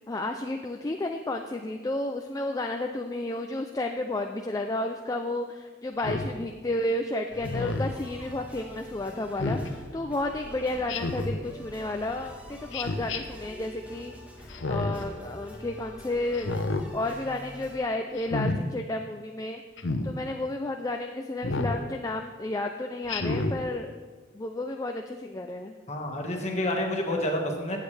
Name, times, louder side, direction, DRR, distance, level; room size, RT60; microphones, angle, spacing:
voice 1, 0.1-14.1 14.4-16.5 16.9-24.0 24.3-25.8, left 2 dB, 20° left, 4 dB, 0.4 m, -32 dB
Speech synthesizer, 6.0-6.3 7.4-7.9 9.4-9.7 10.9-11.4 12.7-13.2 14.5-15.0 16.3-16.8 18.2-18.6 19.8-20.1 21.4-21.8 23.1-23.6, left 2 dB, 80° left, 0.8 m, -29 dB
sound 1, 7.3-17.8, equal, 5° right, 1.3 m, -45 dB
voice 2, 25.9-27.8, left 1 dB, 35° left, 1 dB, 1.6 m, -29 dB
15.0 x 8.4 x 3.3 m, 1.4 s
head